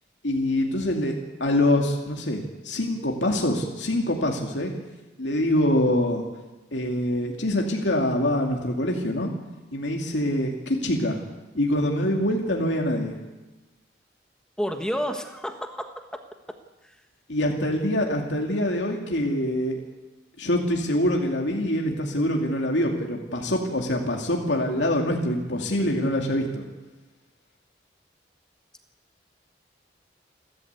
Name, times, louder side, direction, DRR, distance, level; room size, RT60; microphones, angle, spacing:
voice 1, 0.2-4.7 5.2-6.2 6.7-9.3 9.7-11.2 11.5-13.2 17.3-19.8 20.4-26.6, left 1 dB, 75° left, 1 dB, 2.5 m, -25 dB
voice 2, 14.6-16.2 16.8-16.9, equal, 5° left, 5 dB, 1.3 m, -30 dB
29.0 x 13.0 x 8.2 m, 1.1 s
head